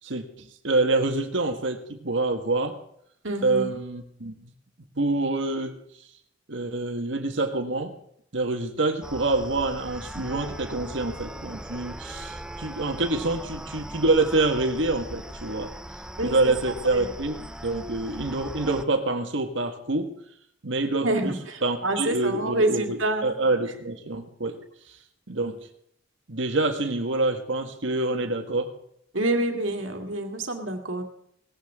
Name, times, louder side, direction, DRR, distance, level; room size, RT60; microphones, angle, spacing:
voice 1, 0.0-2.8 3.4-4.5 5.0-5.8 6.5-7.9 8.3-15.7 16.2-20.1 20.6-21.3 21.6-23.0 23.2-24.6 25.3-25.6 26.3-28.7, right 2 dB, 70° right, 6 dB, 1.7 m, -26 dB
voice 2, 3.2-3.8 16.2-17.1 21.0-23.3 29.1-31.0, right 2 dB, 90° right, 4 dB, 2.2 m, -27 dB
sound 1, 9.0-18.8, right 1 dB, 5° right, 0.5 m, -39 dB
18.5 x 15.0 x 3.7 m, 0.70 s
head